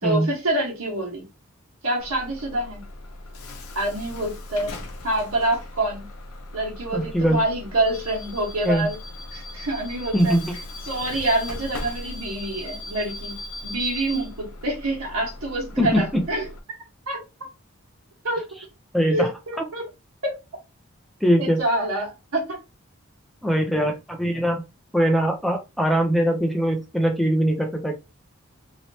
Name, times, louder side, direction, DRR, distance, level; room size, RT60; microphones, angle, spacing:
voice 1, 0.0-1.2 1.8-2.8 3.7-6.0 6.5-9.0 9.3-10.4 10.8-13.3 13.6-16.4 17.1-17.2 18.2-18.4 19.1-19.8 20.2-20.3 21.4-22.6, right 1 dB, 90° right, 1.5 m, -26 dB
Bus / Alarm, 2.0-16.6, left 2 dB, 90° left, 0.7 m, -38 dB
voice 2, 6.9-7.4 8.6-8.9 10.1-10.5 15.8-16.2 18.9-19.3 21.2-21.6 23.4-24.6 24.9-28.0, equal, ahead, 0.4 m, -21 dB
3.0 x 2.9 x 2.8 m
head